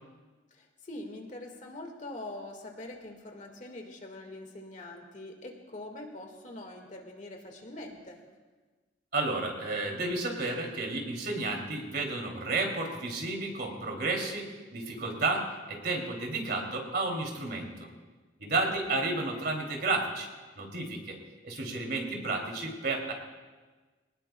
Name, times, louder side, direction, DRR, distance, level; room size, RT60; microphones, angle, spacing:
voice 1, 0.5-8.2 18.7-19.0, left 1 dB, 45° left, 3 dB, 1.8 m, -44 dB
voice 2, 9.1-17.9 18.4-20.3 20.6-21.2 21.4-23.1, right 3 dB, 60° right, 1 dB, 2.7 m, -32 dB
23.0 x 19.0 x 2.3 m, 1.3 s
head